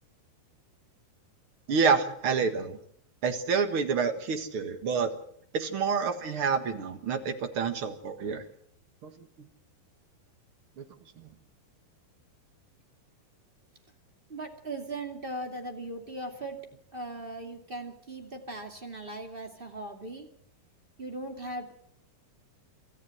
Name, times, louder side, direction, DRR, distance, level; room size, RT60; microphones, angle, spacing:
voice 1, 1.7-2.8 3.2-5.1 5.5-8.5 9.0-9.1 10.8-10.9 11.2-11.3, right 5 dB, 55° right, 7 dB, 1.6 m, -28 dB
voice 2, 14.3-16.6 16.9-20.3 21.0-21.7, right 2 dB, 20° right, 3 dB, 1.9 m, -38 dB
25.5 x 14.0 x 7.7 m, 0.66 s
omnidirectional pair, 4.4 m